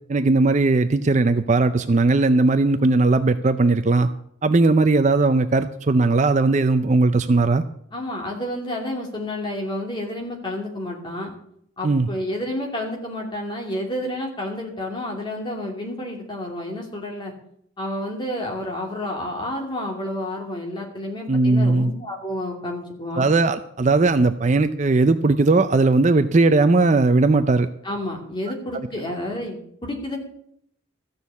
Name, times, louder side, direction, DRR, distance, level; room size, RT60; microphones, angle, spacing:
voice 1, 0.1-4.1 4.4-7.6 11.8-12.1 21.3-21.9 23.2-27.7, right 3 dB, 35° right, 10 dB, 0.5 m, -18 dB
voice 2, 7.9-11.3 11.8-17.3 17.8-23.3 27.8-30.2, left 1 dB, 20° left, 0 dB, 2.7 m, -30 dB
14.5 x 6.7 x 8.3 m, 0.70 s
head